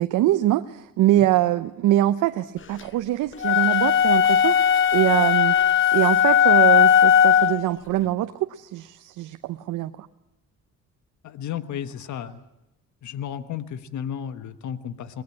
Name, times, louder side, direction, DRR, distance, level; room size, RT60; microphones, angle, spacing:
voice 1, 0.0-5.6 5.9-10.1, right 14 dB, 85° right, 9 dB, 0.8 m, -23 dB
sound 1, 3.4-7.7, left 8 dB, 40° left, 1.0 m, -17 dB
voice 2, 11.2-12.4 13.0-15.2, left 9 dB, 70° left, 11 dB, 1.4 m, -33 dB
22.5 x 19.5 x 8.5 m, 0.92 s
cardioid pair, 90°, 30 cm